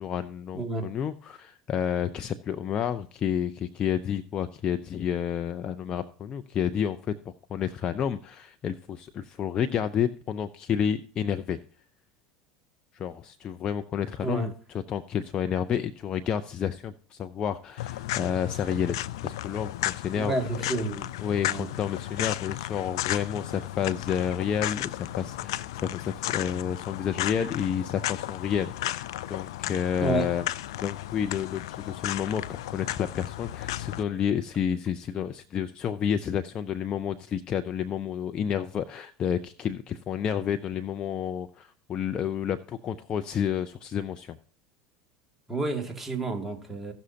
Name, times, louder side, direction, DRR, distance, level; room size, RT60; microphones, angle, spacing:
voice 1, 0.0-11.6 12.9-18.9 19.2-20.4 21.2-30.4 30.8-44.4, left 8 dB, 40° left, 0.6 m, -30 dB
voice 2, 0.5-0.9 14.2-14.5 20.1-21.1 21.4-21.7 30.0-30.3 45.5-46.9, right 2 dB, 10° right, 2.3 m, -30 dB
sound 1, 17.8-34.0, left 14 dB, 75° left, 0.4 m, -34 dB
16.5 x 6.4 x 2.8 m
hypercardioid pair, 85°, 3 cm